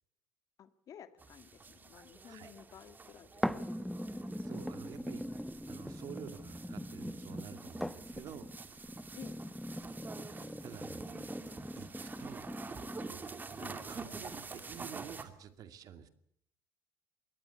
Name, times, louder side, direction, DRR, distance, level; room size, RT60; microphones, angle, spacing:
voice 1, 0.6-3.8 9.2-9.4 13.6-13.8, left 9 dB, 50° left, 11 dB, 1.9 m, -53 dB
sound 1, 1.2-15.2, right 4 dB, 25° right, 2.6 m, -48 dB
sound 2, 3.4-13.4 14.0-14.1, equal, ahead, 1.1 m, -41 dB
voice 2, 4.4-5.2 5.7-8.5 10.6-11.0 11.8-12.5 13.1-13.2 13.6-16.1, right 9 dB, 55° right, 10 dB, 2.3 m, -49 dB
22.0 x 18.5 x 8.3 m, 0.67 s
supercardioid pair, 105°, 8 cm